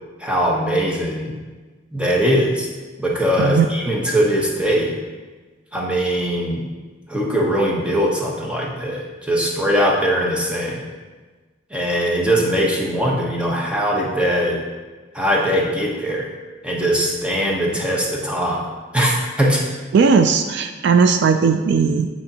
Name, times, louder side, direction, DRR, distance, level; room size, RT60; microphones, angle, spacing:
voice 1, 0.2-1.3 1.9-2.7 3.0-5.0 5.7-6.6 7.1-10.8 11.7-14.6 15.1-16.3 16.6-18.7 18.9-19.6, equal, 5° right, -2 dB, 0.9 m, -21 dB
voice 2, 19.9-22.1, right 5 dB, 60° right, 7 dB, 0.3 m, -16 dB
9.5 x 4.3 x 2.8 m, 1.3 s
head